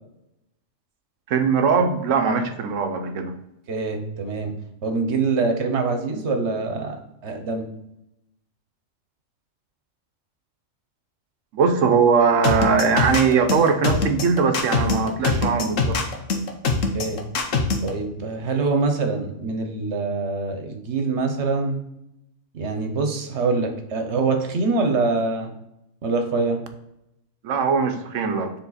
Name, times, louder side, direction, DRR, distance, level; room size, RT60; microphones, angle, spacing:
voice 1, 1.3-3.3 11.5-15.9 27.4-28.5, right 5 dB, 80° right, 7 dB, 1.1 m, -20 dB
voice 2, 3.7-4.5 4.8-7.0 7.2-7.7 16.9-17.2 17.8-21.8 22.5-25.5 26.0-26.6, right 3 dB, 65° right, 5 dB, 1.3 m, -24 dB
sound 1, 12.4-17.9, left 4 dB, 90° left, 1.3 m, -22 dB
7.0 x 3.7 x 4.1 m, 0.84 s
omnidirectional pair, 1.3 m